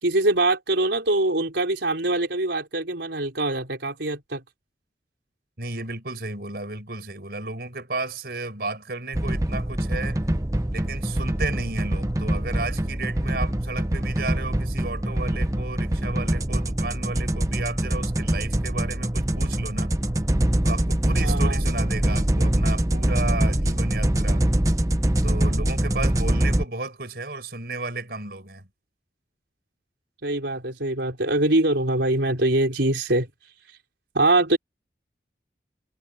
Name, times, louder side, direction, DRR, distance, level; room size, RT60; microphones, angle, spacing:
voice 1, 0.0-4.4 21.2-21.6 30.2-33.3 34.1-34.6, right 2 dB, 80° right, 4.2 m, -23 dB
voice 2, 5.6-10.2 10.7-19.9 20.6-24.4 25.2-28.7, right 3 dB, 60° right, 5.1 m, -33 dB
sound 1, 9.1-26.6, right 1 dB, 20° right, 0.9 m, -24 dB
head